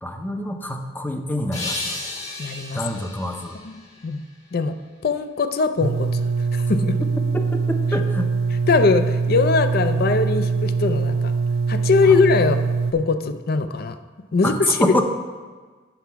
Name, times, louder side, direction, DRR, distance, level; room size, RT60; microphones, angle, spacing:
voice 1, 0.0-2.0 2.7-3.6 7.3-8.3 12.1-12.2 14.4-15.0, left 1 dB, 10° left, 4 dB, 0.6 m, -26 dB
sound 1, 1.5-4.7, left 2 dB, 35° left, 1.7 m, -34 dB
voice 2, 2.4-2.8 3.6-3.7 4.0-4.2 4.5-4.7 5.0-7.0 8.7-11.3 11.7-12.6 12.9-14.0 14.3-15.0, left 4 dB, 55° left, 9 dB, 0.5 m, -21 dB
sound 2, 5.8-12.9, right 4 dB, 55° right, 0.6 m, -23 dB
8.0 x 4.6 x 5.7 m, 1.4 s
head